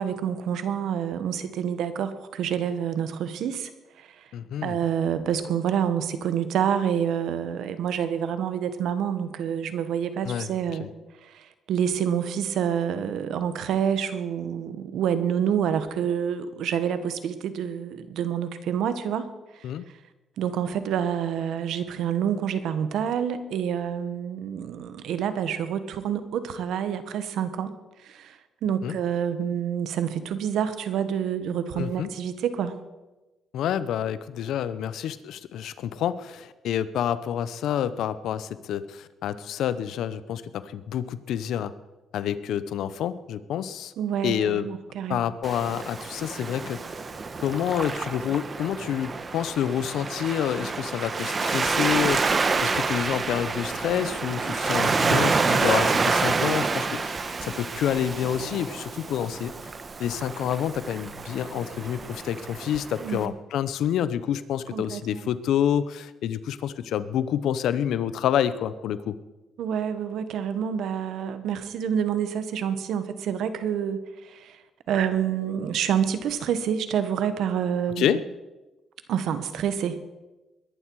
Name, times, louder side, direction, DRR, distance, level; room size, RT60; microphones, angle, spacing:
voice 1, 0.0-3.7 4.0-4.3 4.6-10.9 11.2-19.3 19.6-19.7 20.4-27.7 28.0-32.7 44.0-45.3 63.0-63.3 64.7-65.2 69.6-74.6 74.9-78.2 79.1-80.0, right 8 dB, 80° right, 11 dB, 1.3 m, -28 dB
voice 2, 4.3-4.8 10.2-10.5 10.8-10.9 19.6-19.8 28.8-29.0 31.8-32.1 33.5-41.7 42.1-43.9 44.2-44.7 45.1-46.8 47.4-59.5 60.0-69.2 78.0-78.2, left 10 dB, 80° left, 15 dB, 0.8 m, -28 dB
Waves surf, 45.4-63.3, right 4 dB, 35° right, 1.3 m, -28 dB
21.0 x 11.0 x 4.7 m, 1.1 s
cardioid pair, 90°, 0 cm